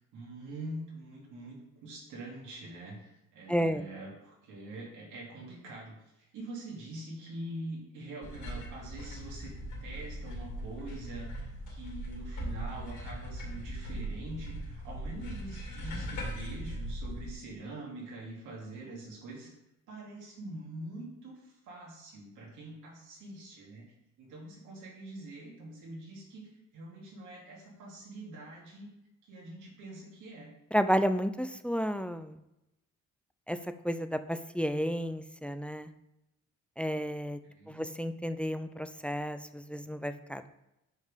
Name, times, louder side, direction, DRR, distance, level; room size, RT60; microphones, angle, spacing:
voice 1, 0.1-19.5 19.9-23.9 24.2-28.9 29.2-30.5 37.4-37.9, right 2 dB, 85° right, -3 dB, 2.7 m, -44 dB
voice 2, 3.5-3.8 30.7-32.4 33.5-33.6 33.8-35.9 36.8-37.4 37.7-40.5, equal, 5° left, 11 dB, 0.4 m, -31 dB
sound 1, 8.2-17.3, equal, 80° left, 2.6 m, -39 dB
6.5 x 5.4 x 5.1 m, 0.88 s
cardioid pair, 90°, 30 cm